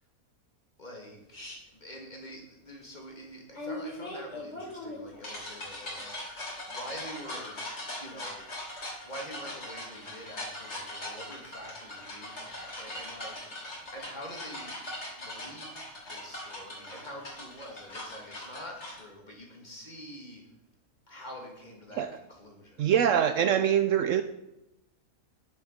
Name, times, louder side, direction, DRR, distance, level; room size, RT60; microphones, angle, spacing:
voice 1, 0.8-8.5 9.0-14.8 15.2-15.8 16.1-20.5 21.1-22.8, equal, 30° left, -1 dB, 2.5 m, -46 dB
sound 1, 1.3-1.6 3.5-19.0, left 1 dB, 50° left, 3.2 m, -40 dB
voice 2, 22.8-24.2, right 9 dB, 70° right, 10 dB, 0.9 m, -24 dB
9.8 x 7.3 x 5.6 m, 0.93 s
omnidirectional pair, 1.5 m